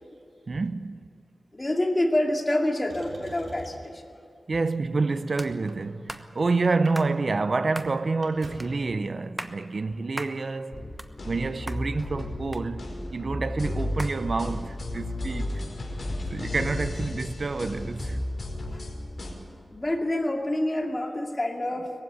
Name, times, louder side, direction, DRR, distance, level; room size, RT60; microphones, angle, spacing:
voice 1, 0.5-1.1 4.5-10.8 11.2-15.6 16.3-18.2, right 3 dB, 55° right, 0.6 m, -28 dB
voice 2, 1.5-4.1 18.7-18.9 19.7-21.9, left 1 dB, 25° left, 2.5 m, -27 dB
Motor vehicle (road), 2.9-4.0 4.8-6.3 6.7-7.0 7.3-7.4 7.7-8.8 9.9-10.0, right 2 dB, 80° right, 3.7 m, -46 dB
sound 1, 5.4-5.5 6.1-6.3 6.9-7.1 7.7-7.9 8.6-8.7 9.2-9.6 10.2-10.4 10.8-11.4 11.7-11.8 12.5-13.1 14.0-14.2, right 1 dB, 10° right, 1.1 m, -37 dB
sound 2, 10.7-19.3, left 1 dB, 50° left, 5.0 m, -33 dB
21.0 x 15.5 x 9.6 m
wide cardioid pair, 75°, 0 cm